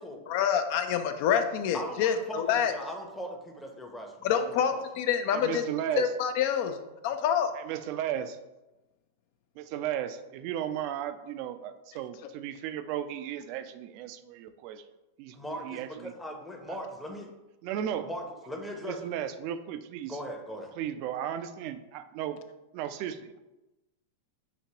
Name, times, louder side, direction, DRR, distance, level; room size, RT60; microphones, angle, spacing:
voice 1, 0.3-2.7 4.2-5.6 6.0-6.8 7.0-7.5, left 8 dB, 55° left, 8 dB, 0.4 m, -27 dB
voice 2, 1.7-4.8 15.3-17.3 18.1-19.0 20.1-20.7, equal, 10° left, 1 dB, 0.7 m, -39 dB
voice 3, 5.3-6.1 7.5-8.4 9.6-14.8 15.2-15.3 15.6-16.1 16.7-16.8 17.6-18.1 18.8-20.2 20.8-22.4 22.7-23.4, right 10 dB, 50° right, 10 dB, 0.4 m, -35 dB
5.9 x 2.8 x 2.8 m, 1.0 s
hypercardioid pair, 100°, 0 cm